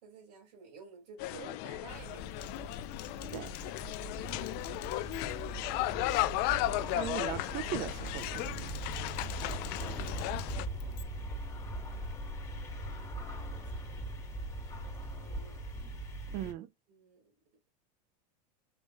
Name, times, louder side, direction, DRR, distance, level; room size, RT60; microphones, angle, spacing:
voice 1, 0.0-2.7 5.9-6.4 9.7-11.0 13.7-14.0 15.0-15.6 16.4-16.5 16.9-17.3, right 5 dB, 80° right, 3.7 m, -54 dB
sound 1, 1.2-10.7, left 17 dB, 50° left, 0.5 m, -35 dB
sound 2, 1.9-16.5, right 1 dB, 15° left, 2.2 m, -41 dB
Typing, 2.4-5.6 5.9-6.3 6.6-7.0 7.8-11.0, left 13 dB, 85° left, 0.8 m, -52 dB
voice 2, 6.9-8.7 16.3-16.7, right 12 dB, 45° right, 0.6 m, -38 dB
5.8 x 3.7 x 2.3 m
supercardioid pair, 125°, 21 cm